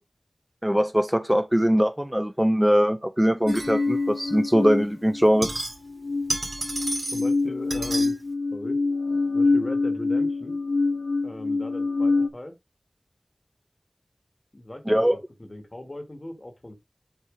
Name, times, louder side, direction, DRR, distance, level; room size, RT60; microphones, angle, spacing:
voice 1, 0.6-5.5 14.9-15.2, equal, 10° right, 0.7 m, -21 dB
sound 1, 3.5-5.6 5.9-12.3, left 3 dB, 90° left, 0.4 m, -25 dB
sound 2, 3.5-4.3 5.1-6.0 6.2-7.3 7.7-8.1, right 1 dB, 65° right, 1.9 m, -32 dB
voice 2, 7.1-8.2 8.5-8.8 9.3-10.6 11.2-12.5 14.5-16.7, left 1 dB, 45° left, 1.5 m, -38 dB
7.1 x 3.0 x 4.9 m
wide cardioid pair, 45°, 0 cm